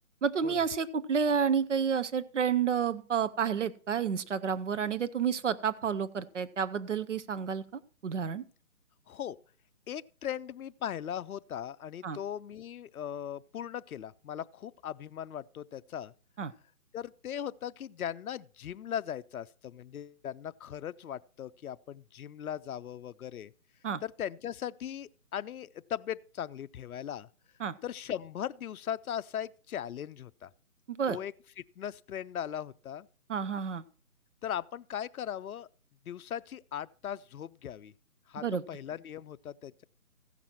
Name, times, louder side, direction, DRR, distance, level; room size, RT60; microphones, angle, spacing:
voice 1, 0.2-7.6 8.0-8.4 12.0-12.2 16.4-16.5 23.8-24.0 27.6-27.7 30.9-31.2 33.3-33.8 38.4-38.6, right 7 dB, 55° right, 0.7 m, -30 dB
voice 2, 9.1-9.4 9.9-16.1 16.9-23.5 24.0-27.3 27.8-30.5 31.1-33.1 34.4-35.7 36.1-37.9 38.3-39.8, left 10 dB, 70° left, 0.6 m, -39 dB
15.0 x 6.0 x 4.4 m
hypercardioid pair, 160°, 44 cm